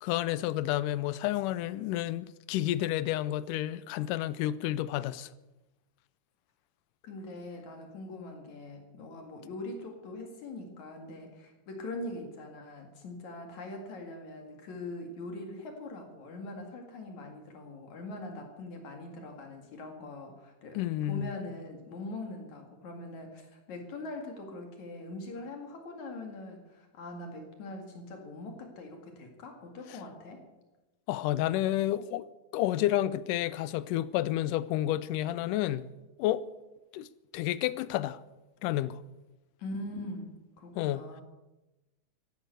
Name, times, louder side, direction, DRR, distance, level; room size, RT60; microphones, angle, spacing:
voice 1, 0.0-5.3 20.8-21.3 31.1-32.3 32.5-35.9 36.2-36.4 36.9-37.1 37.3-38.2 38.6-39.0 40.8-41.1, left 14 dB, 90° left, 2.3 m, -30 dB
voice 2, 7.0-20.8 21.1-30.4 39.6-41.2, left 2 dB, 65° left, 3.3 m, -42 dB
14.5 x 11.5 x 8.1 m
omnidirectional pair, 3.6 m